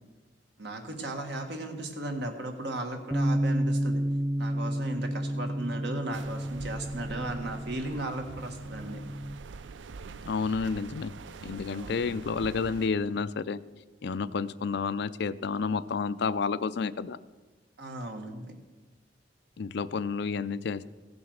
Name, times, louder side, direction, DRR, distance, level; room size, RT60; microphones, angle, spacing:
voice 1, 0.6-4.0 4.4-9.0 11.7-12.1 17.8-18.5, right 1 dB, 70° right, 5 dB, 1.6 m, -36 dB
Bass guitar, 3.1-9.4, right 1 dB, 5° right, 0.6 m, -31 dB
sound 1, 6.1-12.9, right 4 dB, 90° right, 0.5 m, -45 dB
voice 2, 10.3-11.1 11.4-13.6 14.0-17.2 19.6-20.9, left 5 dB, 65° left, 15 dB, 0.4 m, -30 dB
16.0 x 7.0 x 6.5 m, 1.3 s
head